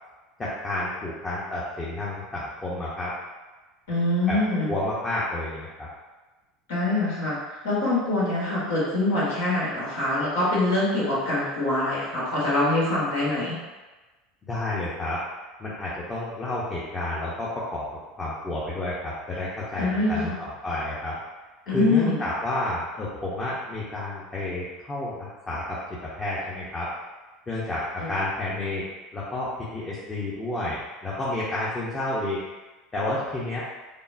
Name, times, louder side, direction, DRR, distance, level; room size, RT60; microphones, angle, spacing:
voice 1, 0.4-3.1 4.3-4.4 4.7-5.9 14.5-15.2 15.6-17.8 18.1-21.2 21.7-26.9 27.5-28.9 29.1-32.4 32.9-33.6, left 2 dB, 25° left, -7 dB, 0.7 m, -30 dB
voice 2, 3.9-4.7 6.7-7.4 7.6-13.6 19.8-20.3 21.7-22.2 28.0-28.1, left 2 dB, 85° left, -8 dB, 1.2 m, -24 dB
3.5 x 2.0 x 2.5 m, 1.2 s
hypercardioid pair, 85°, 0 cm